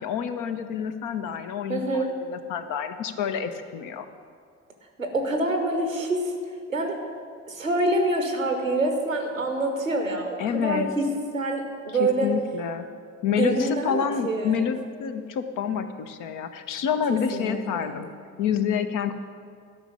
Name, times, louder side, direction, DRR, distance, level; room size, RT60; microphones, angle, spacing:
voice 1, 0.0-4.1 10.4-10.9 11.9-12.9 13.2-18.1 18.4-19.1, left 7 dB, 55° left, 9 dB, 0.8 m, -28 dB
voice 2, 1.7-2.1 5.0-6.3 6.7-7.0 7.5-11.1 11.3-12.3 13.3-14.7 17.1-18.0, right 2 dB, 90° right, 4 dB, 0.8 m, -26 dB
12.5 x 5.6 x 6.7 m, 2.2 s
figure-of-eight pair, 45°, 39 cm